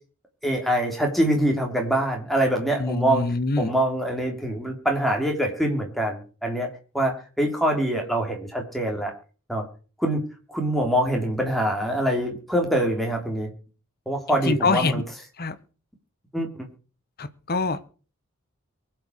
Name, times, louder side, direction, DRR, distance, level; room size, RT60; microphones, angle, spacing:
voice 1, 0.4-3.3 3.6-6.7 6.9-9.1 9.5-9.6 10.0-10.2 10.5-13.5 14.0-15.0 16.3-16.7, right 1 dB, ahead, 1 dB, 3.2 m, -24 dB
voice 2, 2.8-3.7 14.5-15.0 15.4-15.5 17.2-17.9, left 3 dB, 45° left, 12 dB, 1.2 m, -24 dB
23.5 x 8.0 x 4.7 m, 0.38 s
head